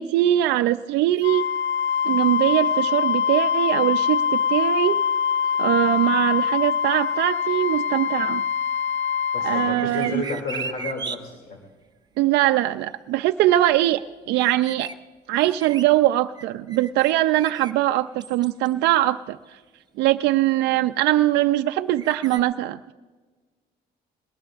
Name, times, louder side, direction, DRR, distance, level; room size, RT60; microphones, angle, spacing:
voice 1, 0.0-1.4 2.1-5.0 5.6-8.4 9.4-10.2 12.2-14.0 14.3-14.9 15.3-19.4 20.0-22.9, right 14 dB, 85° right, 7 dB, 0.4 m, -21 dB
Wind instrument woodwind instrument, 1.2-9.8, left 7 dB, 90° left, 0.9 m, -23 dB
voice 2, 9.3-11.6, left 3 dB, 55° left, 1 dB, 2.6 m, -31 dB
sound 1, 9.8-11.2 14.3-14.9 15.3-15.8 16.4-17.7 18.2-18.7 19.5-19.6 22.0-22.4, right 5 dB, 25° right, 0.6 m, -36 dB
21.5 x 19.0 x 2.5 m, 1.3 s
cardioid pair, 110°, 17 cm